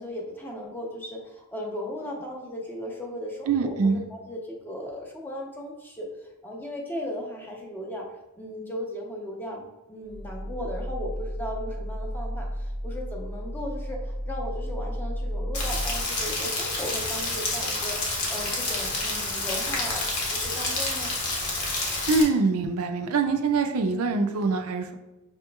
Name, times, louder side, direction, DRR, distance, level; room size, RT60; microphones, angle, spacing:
voice 1, 0.0-6.1 6.4-8.0 8.4-9.6 9.9-21.1, equal, 10° left, -1 dB, 0.7 m, -36 dB
voice 2, 3.5-4.1 22.1-25.0, right 4 dB, 70° right, 6 dB, 0.4 m, -24 dB
sound 1, 10.1-16.0, equal, 30° right, 0.6 m, -33 dB
Rain, 15.5-22.2, left 2 dB, 70° left, 1.1 m, -29 dB
6.0 x 2.9 x 2.3 m, 1.0 s
head